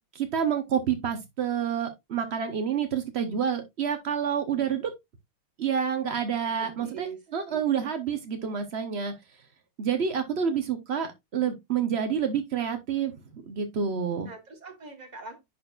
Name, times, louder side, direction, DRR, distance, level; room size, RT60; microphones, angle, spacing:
voice 1, 0.1-4.9 5.6-7.1 7.3-9.1 9.8-14.3, right 7 dB, 75° right, 0.5 m, -28 dB
voice 2, 6.5-7.2 7.5-7.9 14.2-15.4, right 5 dB, 25° right, 1.2 m, -42 dB
10.5 x 4.4 x 2.4 m
omnidirectional pair, 2.4 m